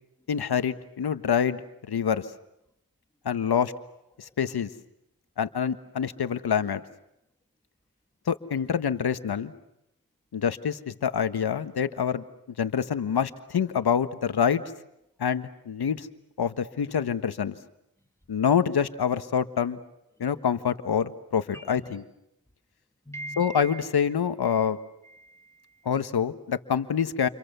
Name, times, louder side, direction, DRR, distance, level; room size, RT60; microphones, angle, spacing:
voice 1, 0.3-1.6 1.9-2.3 3.2-3.7 4.2-4.7 5.4-6.8 8.3-9.5 10.3-12.2 12.6-14.6 15.2-16.1 16.4-17.6 18.3-19.8 20.2-22.0 23.4-24.8 25.8-27.3, left 7 dB, 80° left, 10 dB, 1.4 m, -26 dB
voice 2, 21.5-21.9 23.1-23.8 24.5-24.7 25.0-25.9, right 2 dB, 5° left, 4 dB, 2.0 m, -42 dB
29.5 x 28.5 x 6.9 m, 0.83 s
cardioid pair, 50°, 38 cm